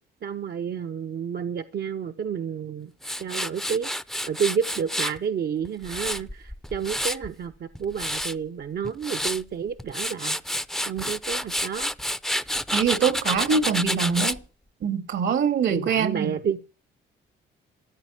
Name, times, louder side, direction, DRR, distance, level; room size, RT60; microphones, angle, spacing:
voice 1, 0.2-2.9 3.2-3.9 4.3-10.4 10.9-11.9 15.7-16.6, right 7 dB, 55° right, 0.8 m, -30 dB
Tools, 3.0-5.2 5.6-7.3 7.7-8.3 8.8-9.4 9.8-14.4, equal, ahead, 0.6 m, -29 dB
voice 2, 12.7-14.4 14.8-16.3, right 6 dB, 70° right, 2.0 m, -24 dB
13.5 x 8.8 x 7.3 m
cardioid pair, 90°, 20 cm